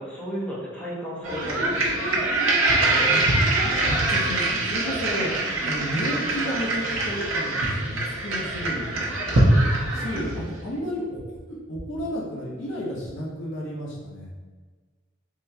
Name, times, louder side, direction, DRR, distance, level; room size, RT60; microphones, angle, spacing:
voice 1, 0.0-1.9 2.8-3.3, equal, 5° left, -8 dB, 0.6 m, -33 dB
sound 1, 1.2-10.5, right 2 dB, 90° right, 0.7 m, -23 dB
voice 2, 3.8-9.1 9.9-11.2 11.5-14.3, equal, 70° left, -4 dB, 0.8 m, -32 dB
3.8 x 2.2 x 2.7 m, 1.4 s
head